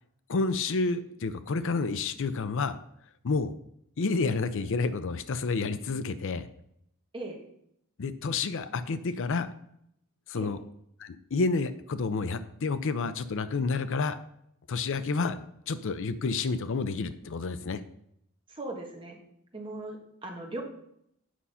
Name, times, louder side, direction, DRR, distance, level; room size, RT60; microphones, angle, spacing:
voice 1, 0.3-2.8 3.2-3.5 4.0-6.5 8.0-9.5 10.3-10.6 11.0-14.2 14.7-17.8, left 4 dB, 60° left, 13 dB, 0.5 m, -29 dB
voice 2, 18.5-19.2 19.5-20.6, right 2 dB, 25° right, 1 dB, 1.6 m, -38 dB
8.7 x 5.5 x 5.6 m, 0.74 s
head